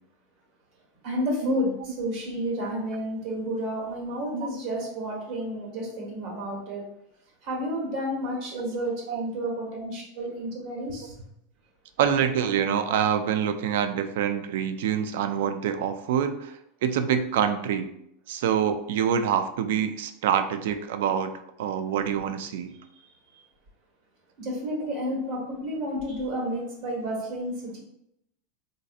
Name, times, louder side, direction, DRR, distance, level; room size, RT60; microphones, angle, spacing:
voice 1, 1.0-6.8 7.4-11.1 23.3-23.4 24.4-27.8, equal, 50° right, -1 dB, 1.3 m, -31 dB
voice 2, 12.0-17.9 18.3-22.7, right 8 dB, 70° right, 9 dB, 0.3 m, -26 dB
4.0 x 2.6 x 2.4 m, 0.79 s
supercardioid pair, 160°, 0 cm